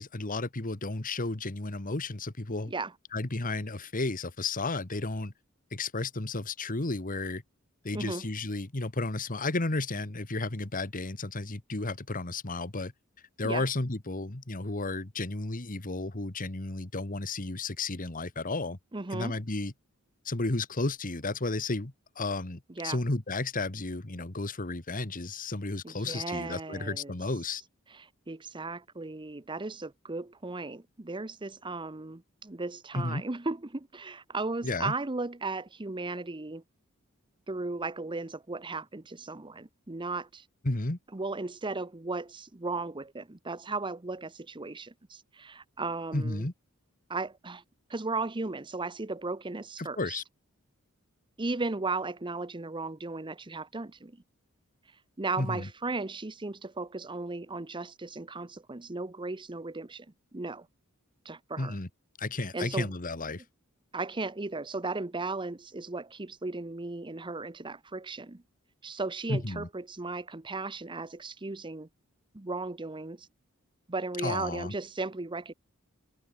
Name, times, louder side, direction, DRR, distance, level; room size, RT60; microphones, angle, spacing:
voice 1, 0.0-2.7 3.1-5.3 5.7-7.4 7.8-12.9 13.4-18.8 19.1-19.7 20.2-27.6 32.9-33.2 34.6-34.9 40.6-41.0 46.1-46.5 49.8-50.2 55.4-55.7 61.6-61.9 62.2-63.4 69.3-69.7 74.2-74.7, left 2 dB, 40° left, 1.6 m, -33 dB
voice 2, 7.9-8.3 13.4-13.6 18.9-19.4 22.8-23.0 25.8-27.1 27.9-36.6 37.5-40.4 41.1-46.5 47.1-47.6 47.9-50.2 51.4-54.1 55.2-60.1 60.3-60.7 61.2-61.8 62.5-62.9 63.9-68.4 68.8-71.9 72.3-73.3 73.9-75.5, right 3 dB, 25° right, 0.9 m, -36 dB
head